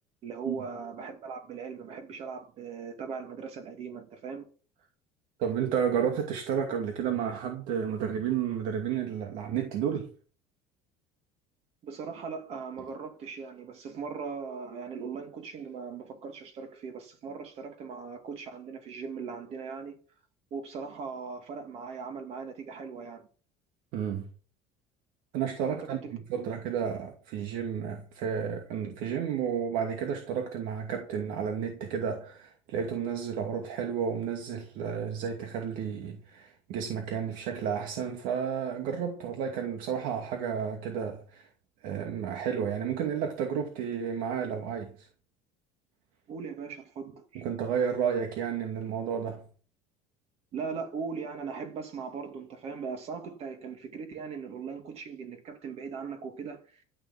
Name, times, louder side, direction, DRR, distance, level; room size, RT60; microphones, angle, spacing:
voice 1, 0.2-4.5 11.8-20.0 20.5-23.3 25.8-26.2 46.3-47.4 50.5-56.8, right 5 dB, 45° right, 2.4 m, -39 dB
voice 2, 5.4-10.1 23.9-24.3 25.3-41.5 41.8-45.1 47.3-49.5, right 7 dB, 75° right, 2.4 m, -31 dB
13.5 x 7.2 x 7.4 m
cardioid pair, 150°, 14 cm